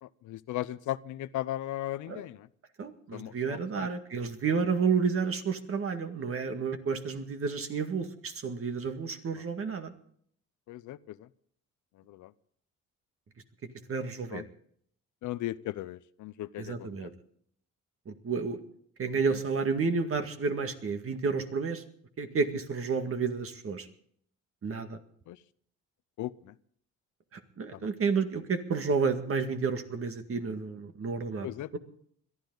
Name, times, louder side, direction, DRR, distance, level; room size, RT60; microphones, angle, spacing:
voice 1, 0.0-2.5 3.1-3.9 9.4-9.5 10.7-11.3 12.1-12.3 14.3-14.5 15.2-17.1 25.3-25.4 26.2-26.5 27.7-27.9 31.4-31.8, left 14 dB, 75° left, 17 dB, 0.6 m, -37 dB
voice 2, 2.8-9.9 13.9-14.4 16.6-17.1 18.1-18.6 19.0-21.8 22.2-23.9 24.6-25.0 27.3-31.5, right 5 dB, 45° right, 7 dB, 1.9 m, -31 dB
22.0 x 12.5 x 3.9 m, 0.63 s
cardioid pair, 90°, 30 cm